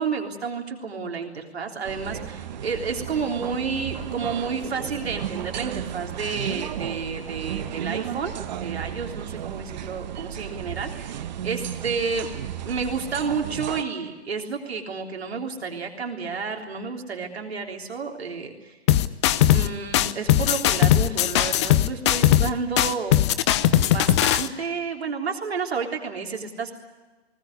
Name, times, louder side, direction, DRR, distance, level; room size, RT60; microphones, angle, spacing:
voice 1, 0.0-12.3 12.7-18.8 19.5-23.2 23.5-23.6 23.8-26.7, right 5 dB, 70° right, 2 dB, 3.6 m, -31 dB
sound 1, 1.8-13.8, right 10 dB, 40° right, 1.2 m, -34 dB
sound 2, 18.9-19.7 19.9-22.5 22.8-24.5, left 13 dB, 25° left, 0.7 m, -19 dB
20.5 x 19.5 x 9.6 m, 1.2 s
hypercardioid pair, 140°, 33 cm